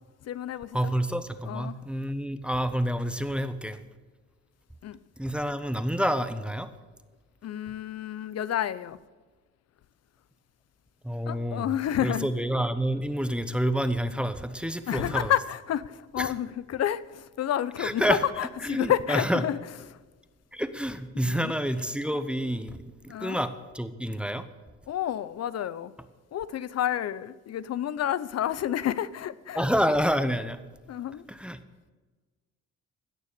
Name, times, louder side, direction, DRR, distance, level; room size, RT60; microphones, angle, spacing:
voice 1, 0.2-0.9 1.4-1.8 4.8-5.0 7.4-9.0 11.3-12.3 14.9-19.6 19.9-20.0 21.1-21.5 23.1-23.4 24.9-25.9 26.3-29.7 30.9-31.2, left 11 dB, 55° left, 0.6 m, -30 dB
voice 2, 0.7-3.8 5.2-6.7 11.0-11.7 12.0-15.3 16.2-16.3 17.8-18.2 18.6-19.4 20.5-22.8 23.2-24.4 29.5-30.6 31.3-31.6, equal, 5° right, 0.8 m, -28 dB
16.5 x 6.6 x 6.8 m
cardioid pair, 90°, 30 cm